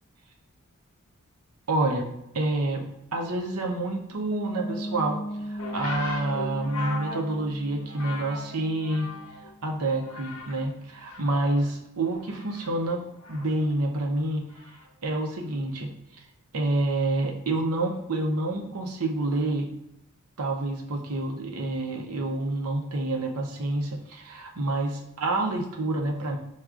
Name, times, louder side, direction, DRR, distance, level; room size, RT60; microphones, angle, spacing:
voice 1, 1.7-2.1 2.3-2.9 3.1-9.1 9.6-13.0 13.3-15.9 16.5-19.7 20.4-26.4, right 2 dB, 90° right, 2 dB, 0.7 m, -28 dB
Piano, 4.3-10.0, equal, 20° left, 0.4 m, -38 dB
sound 1, 5.6-9.5 9.8-10.7 11.0-13.7 14.5-14.9, left 3 dB, 80° left, 0.8 m, -39 dB
5.7 x 2.4 x 2.4 m, 0.84 s
head